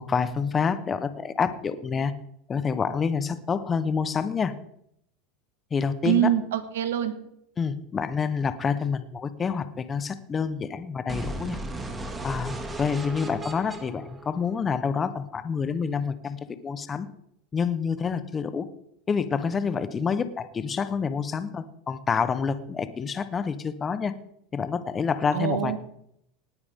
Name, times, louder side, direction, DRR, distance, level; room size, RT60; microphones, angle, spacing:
voice 1, 0.0-2.1 2.5-4.5 5.7-6.3 7.6-11.6 12.2-17.1 17.5-18.7 19.1-24.1 24.5-25.8, left 6 dB, 25° left, 12 dB, 1.1 m, -28 dB
voice 2, 6.0-7.1 25.3-25.8, right 12 dB, 85° right, 10 dB, 1.5 m, -24 dB
sound 1, 11.1-15.1, right 1 dB, 20° right, 2.2 m, -36 dB
19.0 x 9.6 x 3.7 m, 0.74 s
hypercardioid pair, 100°, 0 cm